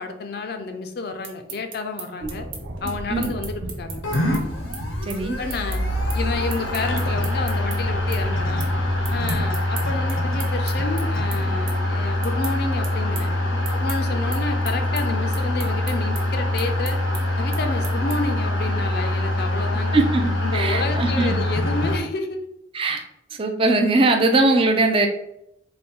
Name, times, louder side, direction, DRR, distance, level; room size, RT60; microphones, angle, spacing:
voice 1, 0.0-2.5 2.8-4.0 5.4-5.8 6.1-8.6 9.1-13.3 13.7-17.0 17.4-20.0 20.4-22.5, left 3 dB, 55° left, 7 dB, 0.4 m, -30 dB
sound 1, 1.2-7.8 8.1-8.7 9.0-18.4, right 6 dB, 85° right, 0.9 m, -38 dB
sound 2, 2.2-9.5, equal, 65° right, 0.6 m, -35 dB
sound 3, 4.0-22.0, left 1 dB, 90° left, 0.7 m, -24 dB
voice 2, 5.0-5.4 19.9-21.4 22.7-23.0 23.4-25.1, right 2 dB, 30° right, 4 dB, 0.3 m, -20 dB
4.1 x 2.3 x 3.5 m, 0.80 s
head